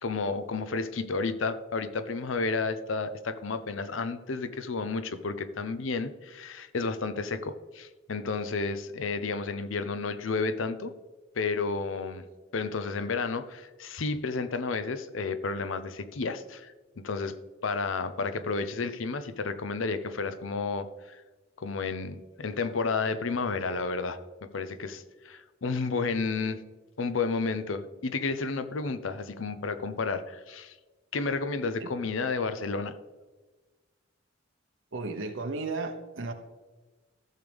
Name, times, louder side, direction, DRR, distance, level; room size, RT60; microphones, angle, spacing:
voice 1, 0.0-10.9 11.4-12.2 12.5-17.3 17.6-21.2 21.6-24.2 24.5-26.6 27.0-30.7 31.1-33.0, left 4 dB, 80° left, 0.7 m, -31 dB
voice 2, 34.9-36.3, right 3 dB, 75° right, 1.0 m, -34 dB
14.5 x 6.6 x 3.5 m
head